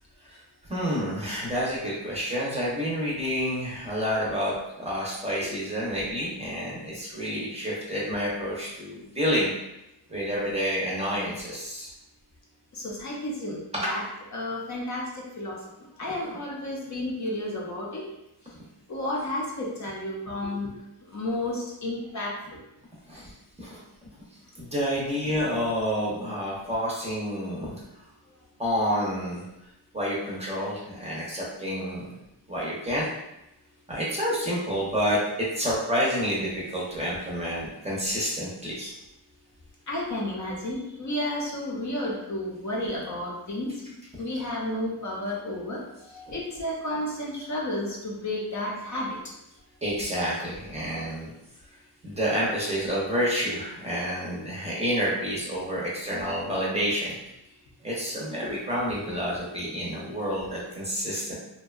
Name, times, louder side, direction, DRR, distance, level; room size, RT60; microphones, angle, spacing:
voice 1, 0.7-9.5 10.1-11.9 16.2-16.3 23.1-23.8 24.6-27.7 28.6-29.4 29.9-32.1 32.5-33.1 33.9-38.9 46.3-46.4 49.8-51.3 52.0-57.2 57.8-61.3, equal, 15° right, -6 dB, 0.6 m, -29 dB
voice 2, 12.7-14.0 14.3-18.0 18.9-20.7 21.1-22.6 39.9-43.8 44.2-49.3, left 1 dB, 45° left, -3 dB, 0.6 m, -32 dB
2.6 x 2.2 x 2.3 m, 0.88 s
wide cardioid pair, 120°, 41 cm